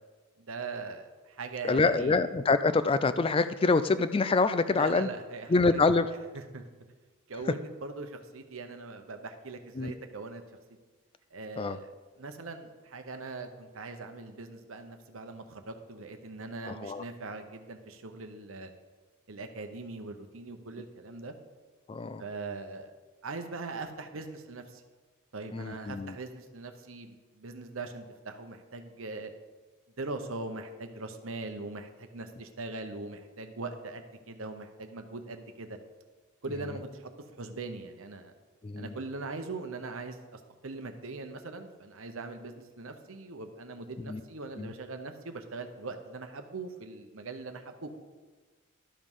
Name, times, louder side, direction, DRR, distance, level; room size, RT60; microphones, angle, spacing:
voice 1, 0.4-2.2 4.7-5.8 6.3-6.6 7.3-10.4 11.3-11.9 12.2-18.7 19.3-21.3 22.2-22.9 23.2-24.8 25.3-29.3 30.0-35.8 36.4-38.3 38.8-47.9, right 3 dB, 70° right, 6 dB, 0.9 m, -41 dB
voice 2, 1.6-5.1 5.5-6.1 9.8-9.9 11.6-11.8 16.7-17.0 21.9-22.2 25.5-26.2 38.6-38.9 44.1-44.2 44.6-44.7, left 3 dB, 25° left, 12 dB, 0.4 m, -26 dB
12.0 x 5.2 x 5.5 m, 1.4 s
head